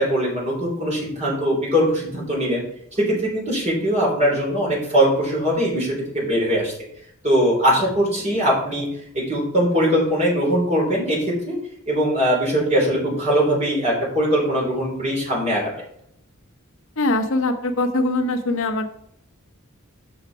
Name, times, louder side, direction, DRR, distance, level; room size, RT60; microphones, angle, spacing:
voice 1, 0.0-2.6 3.1-6.7 7.2-8.9 9.1-11.2 11.4-11.6 11.9-15.7, equal, 30° right, -4 dB, 3.3 m, -21 dB
voice 2, 17.0-18.9, left 2 dB, 60° left, 5 dB, 0.8 m, -22 dB
7.1 x 5.9 x 4.6 m, 0.71 s
head